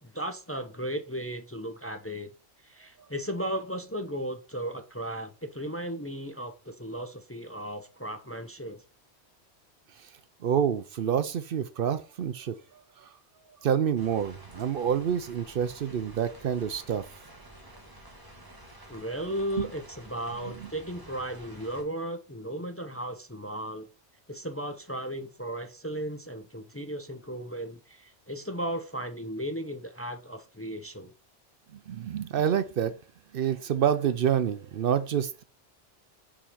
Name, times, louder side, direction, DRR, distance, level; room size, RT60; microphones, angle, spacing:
voice 1, 0.0-2.3 2.6-8.8 18.9-23.9 24.3-31.1, right 1 dB, 15° left, 0.6 m, -35 dB
voice 2, 10.4-13.1 13.6-17.1 19.6-19.7 20.6-20.7 31.7-33.0 33.3-35.4, right 8 dB, 65° right, 0.7 m, -28 dB
sound 1, 14.0-21.8, right 1 dB, 20° right, 1.5 m, -50 dB
5.0 x 4.9 x 5.7 m
omnidirectional pair, 1.1 m